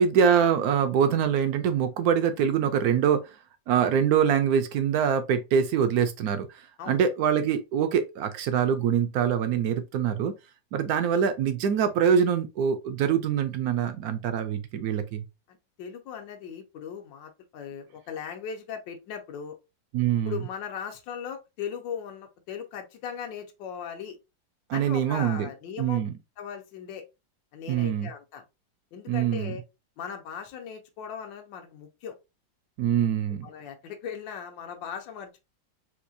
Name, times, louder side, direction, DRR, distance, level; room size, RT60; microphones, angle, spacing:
voice 1, 0.0-3.3 3.7-10.3 10.7-15.2 19.9-20.4 24.7-25.5 25.8-26.1 27.7-28.1 29.1-29.6 32.8-33.5, right 8 dB, 70° right, 0.9 m, -24 dB
voice 2, 15.5-19.6 20.2-24.2 24.7-26.0 26.4-27.1 27.5-28.4 28.9-29.6 30.0-32.2 33.4-35.4, left 7 dB, 85° left, 1.4 m, -38 dB
4.3 x 2.4 x 2.6 m
omnidirectional pair, 2.0 m